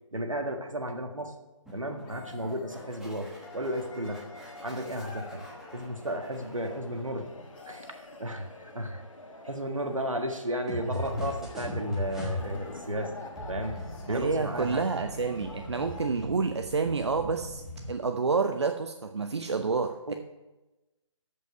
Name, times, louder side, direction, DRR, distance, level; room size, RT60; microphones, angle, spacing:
voice 1, 0.1-1.4 1.7-4.2 4.6-7.3 7.7-9.0 9.4-13.1 13.5-14.8 19.8-20.1, equal, 80° right, 5 dB, 1.7 m, -34 dB
sound 1, 1.7-7.6 10.7-12.5 13.4-17.9, left 1 dB, ahead, 1.2 m, -40 dB
sound 2, 1.8-3.8 4.9-5.9 7.3-8.9 11.0-11.6 12.5-12.9 13.6-15.4 17.2-17.4, left 3 dB, 15° left, 1.4 m, -51 dB
sound 3, 3.4-16.1, left 2 dB, 80° left, 1.6 m, -47 dB
voice 2, 14.1-20.1, right 4 dB, 55° right, 7 dB, 0.6 m, -29 dB
13.5 x 5.5 x 5.4 m, 1.1 s
figure-of-eight pair, 150°, 17 cm